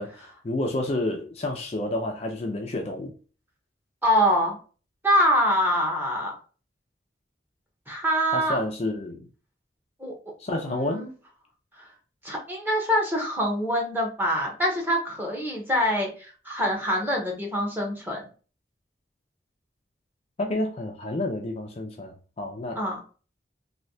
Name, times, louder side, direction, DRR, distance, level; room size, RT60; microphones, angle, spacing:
voice 1, 0.0-3.1 8.3-9.3 10.4-11.0 20.4-22.8, left 1 dB, 35° left, 2 dB, 0.5 m, -30 dB
voice 2, 4.0-4.6 5.0-6.3 7.9-8.6 10.0-10.1 10.6-11.1 11.8-11.9 12.2-18.3 22.8-23.0, equal, 10° right, 0 dB, 1.0 m, -25 dB
3.2 x 2.7 x 2.7 m, 0.36 s
head